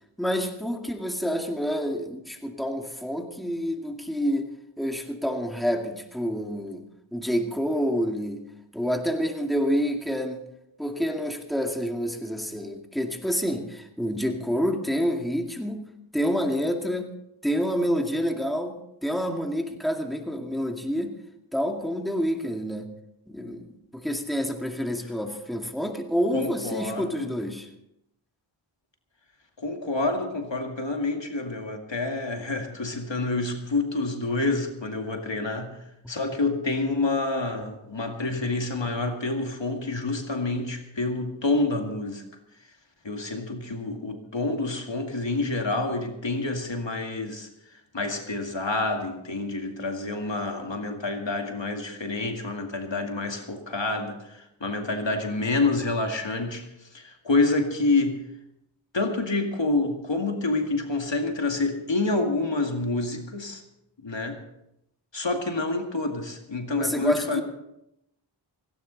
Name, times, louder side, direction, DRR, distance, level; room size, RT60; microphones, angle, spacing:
voice 1, 0.2-4.5 4.8-6.8 7.1-8.4 8.7-10.4 10.8-15.8 16.1-17.1 17.4-21.1 21.5-22.9 23.3-27.7 66.8-67.4, equal, ahead, 3 dB, 2.2 m, -28 dB
voice 2, 26.3-27.3 29.6-42.2 43.0-58.3 58.9-63.6 64.0-64.4 65.1-67.4, left 2 dB, 65° left, 3 dB, 2.2 m, -28 dB
17.5 x 16.5 x 4.0 m, 0.82 s
wide cardioid pair, 45°, 47 cm